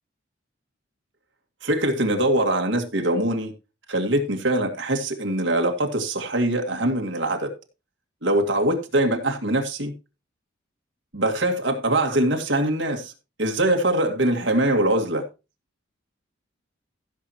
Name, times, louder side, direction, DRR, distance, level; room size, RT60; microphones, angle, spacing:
voice 1, 1.6-3.5 3.9-7.5 8.2-9.9 11.1-13.1 13.4-15.2, right 1 dB, 65° right, 2.1 m, -23 dB
16.0 x 7.4 x 3.0 m
head